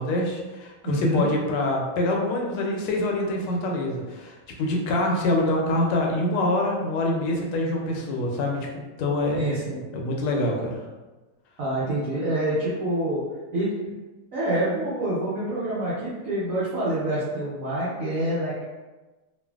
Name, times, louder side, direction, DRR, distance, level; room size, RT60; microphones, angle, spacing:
voice 1, 0.0-8.7 9.0-9.4 9.9-10.8, left 1 dB, 85° left, 0 dB, 1.5 m, -25 dB
voice 2, 0.8-1.2 9.3-9.8 11.6-13.2 13.5-14.0 14.3-18.6, right 1 dB, 80° right, -9 dB, 0.7 m, -26 dB
3.2 x 2.4 x 2.2 m, 1.2 s
omnidirectional pair, 2.3 m